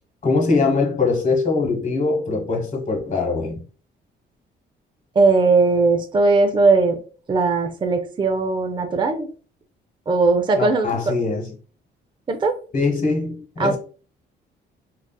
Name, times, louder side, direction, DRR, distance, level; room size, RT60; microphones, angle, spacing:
voice 1, 0.2-3.6 10.6-11.5 12.7-13.8, left 3 dB, 40° left, 1.2 m, -22 dB
voice 2, 5.2-7.0 7.3-9.3 10.1-10.9 12.3-12.6 13.6-13.8, right 3 dB, 25° right, 0.5 m, -18 dB
3.9 x 2.4 x 2.2 m
cardioid pair, 90°, 20 cm